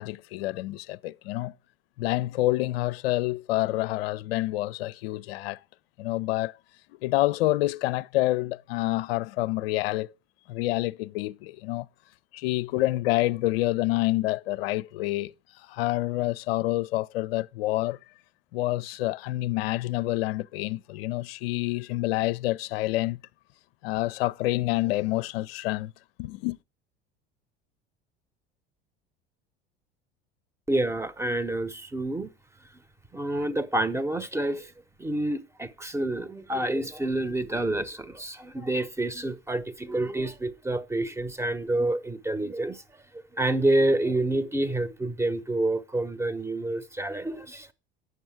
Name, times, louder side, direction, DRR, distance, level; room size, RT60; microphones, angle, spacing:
voice 1, 0.0-1.5 2.0-5.6 6.0-6.6 7.0-10.1 10.5-11.9 12.3-15.3 15.6-18.0 18.5-23.2 23.8-25.9 26.2-26.6, left 17 dB, 65° left, 0.5 m, -27 dB
voice 2, 30.7-32.3 33.1-34.7 35.0-42.8 43.3-47.7, right 1 dB, 10° right, 1.0 m, -28 dB
9.5 x 7.0 x 4.7 m
figure-of-eight pair, 70°, 33 cm